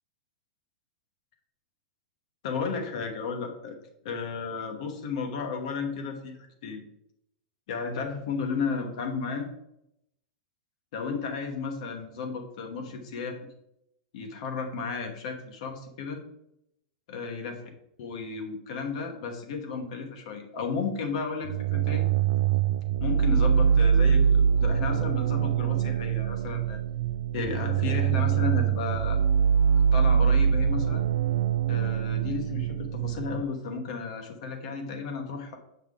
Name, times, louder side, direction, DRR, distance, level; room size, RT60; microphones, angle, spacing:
voice 1, 2.4-3.8 4.0-6.8 7.7-9.5 10.9-13.4 14.1-16.2 17.1-17.6 18.0-22.1 23.0-26.8 27.3-29.2 29.9-31.0 31.7-35.6, left 5 dB, 55° left, 4 dB, 1.1 m, -33 dB
sound 1, 21.4-33.4, right 7 dB, 65° right, 0.3 m, -24 dB
7.1 x 5.7 x 3.7 m, 0.81 s
supercardioid pair, 165°, 4 cm